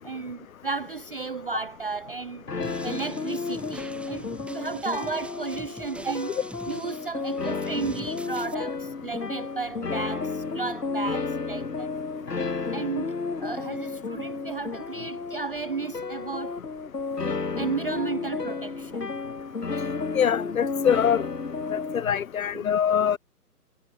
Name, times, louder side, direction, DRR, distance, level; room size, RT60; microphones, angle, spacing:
voice 1, 0.0-6.4 6.7-11.9 12.7-16.6 17.6-19.1 22.5-22.7, right 4 dB, 35° right, 0.6 m, -34 dB
sound 1, 2.5-22.0, left 4 dB, 85° left, 1.8 m, -32 dB
sound 2, 2.6-8.5, right 2 dB, ahead, 5.1 m, -45 dB
voice 2, 20.1-21.2 21.7-23.2, left 8 dB, 60° left, 0.7 m, -23 dB
figure-of-eight pair, 145°, 47 cm